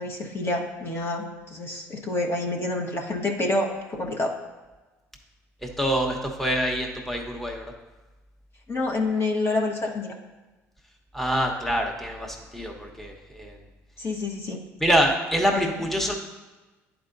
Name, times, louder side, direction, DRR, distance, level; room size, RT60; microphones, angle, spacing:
voice 1, 0.0-4.3 8.7-10.1 14.0-14.6 15.5-15.7, left 2 dB, 35° left, 1 dB, 1.1 m, -28 dB
voice 2, 5.6-7.7 11.1-13.6 14.8-16.1, equal, 5° left, 1 dB, 1.1 m, -25 dB
10.5 x 4.6 x 2.6 m, 1.2 s
hypercardioid pair, 65°, 7 cm